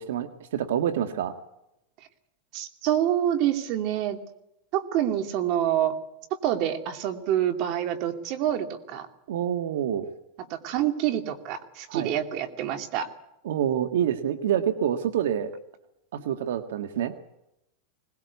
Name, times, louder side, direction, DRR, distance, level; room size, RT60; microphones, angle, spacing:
voice 1, 0.0-1.3 9.3-10.1 11.9-12.1 13.4-15.5 16.1-17.1, right 9 dB, 80° right, 9 dB, 1.6 m, -27 dB
voice 2, 2.5-4.2 4.7-5.9 6.4-9.1 10.5-13.1, right 11 dB, 50° right, 8 dB, 2.6 m, -27 dB
21.5 x 19.5 x 8.3 m, 0.85 s
supercardioid pair, 140°, 0 cm